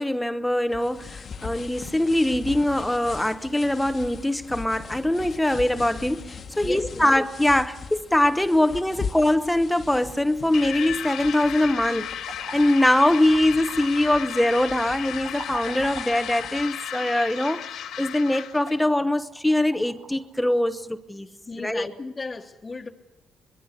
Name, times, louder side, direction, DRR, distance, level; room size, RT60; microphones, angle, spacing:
voice 1, 0.0-17.7 18.0-21.3 21.6-21.9, left 1 dB, 5° left, 0.9 m, -23 dB
sound 1, 0.7-16.7, left 5 dB, 50° left, 1.3 m, -40 dB
voice 2, 6.6-7.2 21.3-22.9, left 3 dB, 25° left, 1.4 m, -35 dB
sound 2, 10.5-18.8, left 10 dB, 85° left, 2.2 m, -34 dB
sound 3, 12.0-20.8, right 2 dB, 90° right, 7.4 m, -44 dB
24.5 x 21.5 x 6.8 m
cardioid pair, 90°, 0 cm